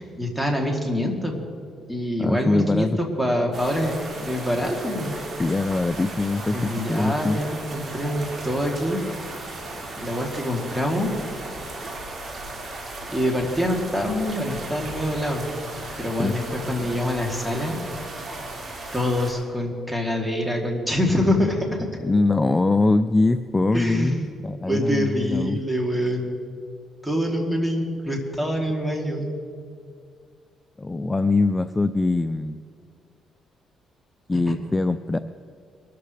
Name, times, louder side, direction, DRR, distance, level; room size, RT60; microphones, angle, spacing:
voice 1, 0.0-1.3 1.9-5.2 6.5-9.0 10.0-11.1 13.1-15.4 16.0-17.8 18.9-21.9 23.7-24.3 24.6-26.3 27.0-29.3, equal, 5° right, 0 dB, 3.0 m, -25 dB
voice 2, 2.2-3.0 5.4-7.4 16.2-16.4 22.0-24.1 24.4-25.6 30.8-32.6 34.3-35.2, left 2 dB, 20° left, 10 dB, 0.4 m, -22 dB
sound 1, 3.5-19.3, right 2 dB, 45° right, 4.8 m, -36 dB
23.0 x 13.5 x 3.4 m, 2.2 s
cardioid pair, 90°, 0 cm